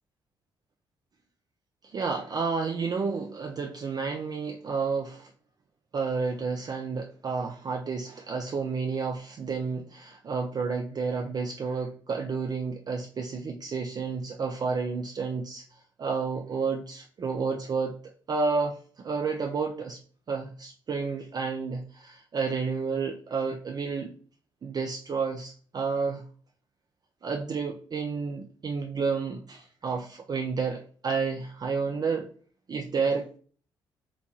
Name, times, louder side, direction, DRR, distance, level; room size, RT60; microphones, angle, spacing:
voice 1, 1.8-5.3 5.9-15.6 16.0-17.9 18.3-20.0 20.3-24.1 24.6-26.2 27.2-32.3 32.7-33.4, right 5 dB, 35° right, 2 dB, 0.4 m, -30 dB
3.0 x 2.2 x 2.6 m, 0.43 s
figure-of-eight pair, 40°, 12 cm